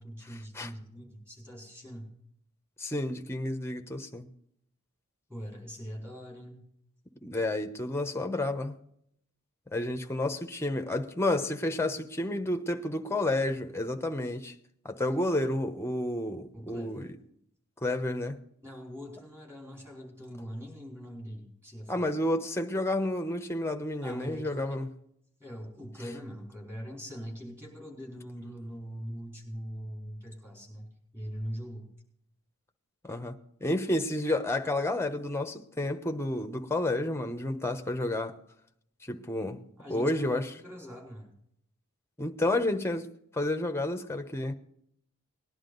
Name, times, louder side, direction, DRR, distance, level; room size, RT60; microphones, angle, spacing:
voice 1, 0.0-2.1 5.3-6.6 16.5-17.1 18.6-22.1 24.0-24.8 25.4-30.9 31.1-31.9 39.8-41.3, equal, 10° right, 4.7 m, -42 dB
voice 2, 2.8-4.3 7.2-8.8 9.7-14.5 14.8-17.1 17.8-18.4 21.9-24.9 33.0-33.4 33.6-38.4 39.1-39.6 39.9-40.5 42.2-44.5, left 1 dB, 10° left, 0.9 m, -30 dB
19.5 x 11.0 x 4.0 m
head